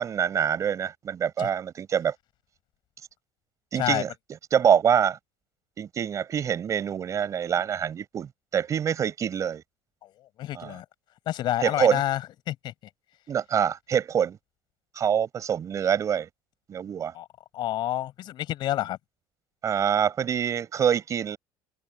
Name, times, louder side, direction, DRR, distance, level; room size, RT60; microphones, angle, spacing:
voice 1, 0.0-2.1 3.7-4.1 4.5-5.2 5.8-9.6 10.5-10.8 11.6-12.0 13.3-14.4 14.9-16.3 16.7-17.1 19.6-21.4, right 8 dB, 35° right, 4.9 m, -25 dB
voice 2, 10.4-10.8 11.3-12.2 12.5-12.6 17.1-17.2 17.5-19.0, left 13 dB, 55° left, 5.1 m, -28 dB
cardioid pair, 140°, 9 cm